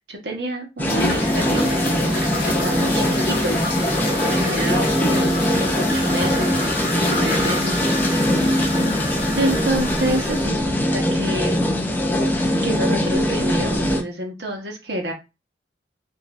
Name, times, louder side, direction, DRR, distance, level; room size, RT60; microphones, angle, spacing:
voice 1, 0.0-3.7 4.3-6.6 7.1-7.8 9.4-11.8 12.6-15.1, right 1 dB, 75° right, 2 dB, 1.0 m, -28 dB
sound 1, 0.8-10.5, left 1 dB, 60° left, 1.5 m, -27 dB
sound 2, 0.8-14.0, left 1 dB, 10° left, 0.4 m, -21 dB
3.9 x 2.6 x 2.4 m, 0.26 s
head